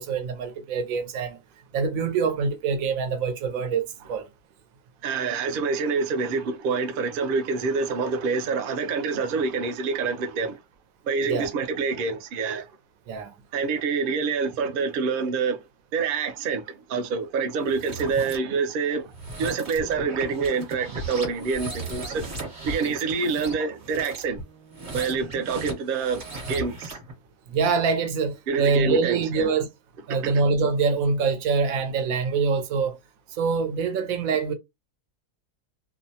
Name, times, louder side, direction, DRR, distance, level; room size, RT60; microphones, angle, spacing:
voice 1, 0.0-1.4 1.7-4.3 11.3-11.5 13.1-13.3 27.5-29.7 30.1-33.0 33.3-34.5, right 5 dB, 85° right, 1.0 m, -25 dB
voice 2, 5.0-10.6 11.1-12.6 13.5-15.6 15.9-19.1 19.4-22.2 22.7-24.4 24.9-26.2 26.5-27.0 28.5-29.5 30.1-30.4, right 5 dB, 60° right, 0.5 m, -26 dB
sound 1, 17.6-18.4 19.1-27.1, right 2 dB, 45° right, 1.0 m, -36 dB
2.6 x 2.1 x 2.7 m
omnidirectional pair, 1.4 m